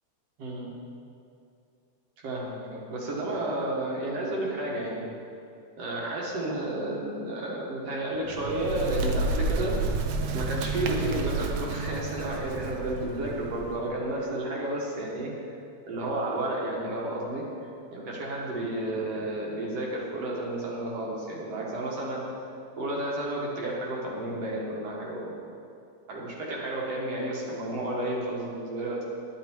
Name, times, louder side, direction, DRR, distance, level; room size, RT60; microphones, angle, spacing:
voice 1, 0.4-0.7 2.2-5.0 5.8-10.0 10.3-15.3 15.9-22.2 22.8-25.4 26.1-29.1, right 1 dB, 60° right, -3 dB, 2.7 m, -32 dB
Bird, 8.2-13.9, right 3 dB, 80° right, 2.1 m, -31 dB
11.0 x 10.5 x 4.6 m, 2.5 s
omnidirectional pair, 3.4 m